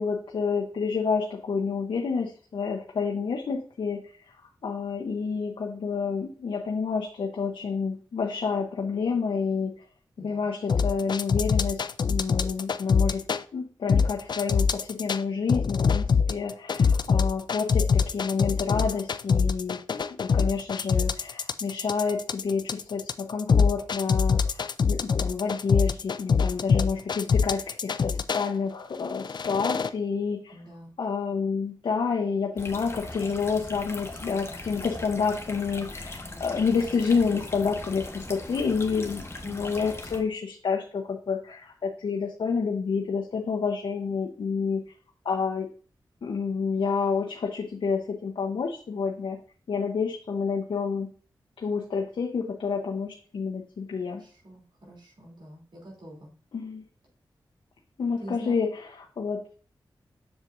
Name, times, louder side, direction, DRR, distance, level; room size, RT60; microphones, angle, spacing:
voice 1, 0.0-4.0 4.6-9.7 10.2-11.8 12.1-13.2 13.5-30.6 31.0-44.8 45.2-45.7 46.2-49.4 49.7-51.1 51.6-54.2 56.5-56.8 58.0-59.4, left 5 dB, 75° left, 1 dB, 0.9 m, -29 dB
sound 1, 10.7-13.4 13.9-15.2 15.5-28.5 29.1-29.9, left 5 dB, 60° left, 0.4 m, -24 dB
voice 2, 30.5-30.9 39.4-39.7 54.1-56.3 58.2-58.5, right 1 dB, 65° right, -3 dB, 3.2 m, -45 dB
sound 2, 32.6-40.2, left 2 dB, 30° left, 1.3 m, -39 dB
7.1 x 6.7 x 2.6 m, 0.42 s
cardioid pair, 50°, 9 cm